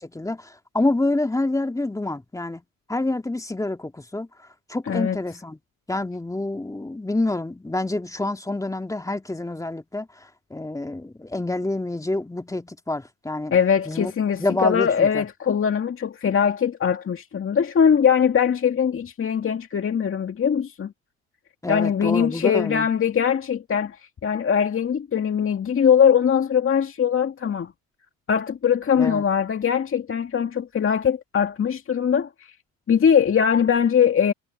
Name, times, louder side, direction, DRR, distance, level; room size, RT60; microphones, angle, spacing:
voice 1, 0.0-2.6 2.9-4.3 4.7-5.6 5.9-10.1 10.5-13.5 13.9-14.1 14.4-15.3 21.6-22.9 29.0-29.2, left 2 dB, 10° left, 1.9 m, -27 dB
voice 2, 4.9-5.2 13.5-20.9 21.7-27.7 28.3-32.5 32.9-34.3, left 7 dB, 35° left, 2.2 m, -21 dB
supercardioid pair, 75°, 37 cm